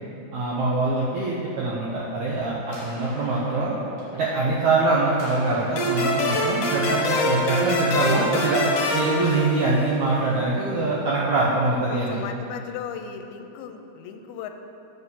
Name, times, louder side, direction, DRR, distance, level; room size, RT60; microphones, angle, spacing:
voice 1, 0.3-3.8 4.1-8.6 8.9-12.1, right 2 dB, 80° right, -6 dB, 1.7 m, -23 dB
sound 1, 1.8-9.6, right 1 dB, 55° right, 3.2 m, -43 dB
sound 2, 5.8-10.1, left 1 dB, 60° left, 2.5 m, -25 dB
voice 2, 11.9-14.5, left 7 dB, 85° left, 6 dB, 2.5 m, -36 dB
8.5 x 4.5 x 7.1 m, 2.8 s
omnidirectional pair, 4.4 m